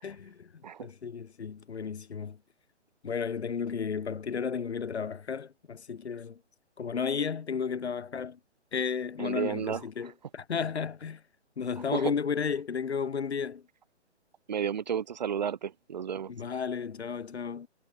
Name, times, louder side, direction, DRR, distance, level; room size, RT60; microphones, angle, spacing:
voice 1, 0.0-0.5 0.8-2.4 3.0-6.4 6.8-8.4 8.7-11.2 11.6-13.6 16.3-17.7, left 6 dB, 65° left, 0.9 m, -33 dB
voice 2, 9.2-9.8 11.9-12.1 14.5-16.3, right 8 dB, 40° right, 0.6 m, -32 dB
figure-of-eight pair, 135°, 35 cm